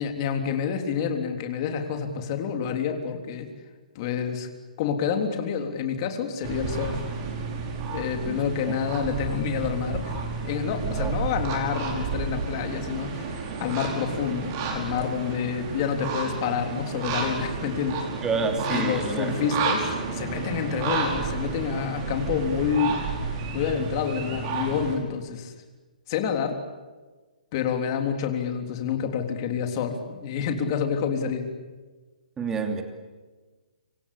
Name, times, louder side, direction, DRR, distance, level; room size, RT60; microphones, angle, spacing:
voice 1, 0.0-3.5 4.0-4.5 4.8-7.0 7.9-10.2 10.4-18.0 18.7-23.0 23.5-25.5 26.1-26.6 27.5-31.5, left 7 dB, 30° left, 5 dB, 3.5 m, -28 dB
sound 1, 6.4-25.0, right 4 dB, 30° right, 5.2 m, -31 dB
voice 2, 10.8-11.2 18.2-19.4 32.4-32.8, right 4 dB, 10° right, 5 dB, 2.9 m, -29 dB
26.5 x 26.0 x 8.5 m, 1.3 s
hypercardioid pair, 160°, 4 cm